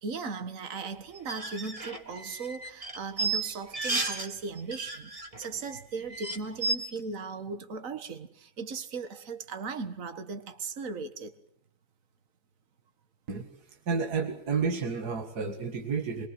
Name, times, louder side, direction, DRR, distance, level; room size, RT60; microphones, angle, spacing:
voice 1, 0.0-5.1 5.4-11.3, right 4 dB, 50° right, 2.0 m, -37 dB
sound 1, 1.2-4.3 4.6-5.5 5.8-5.9 6.1-6.7, right 3 dB, 20° right, 2.2 m, -32 dB
voice 2, 13.9-16.3, right 5 dB, 70° right, 2.5 m, -30 dB
24.5 x 23.0 x 7.9 m
omnidirectional pair, 1.8 m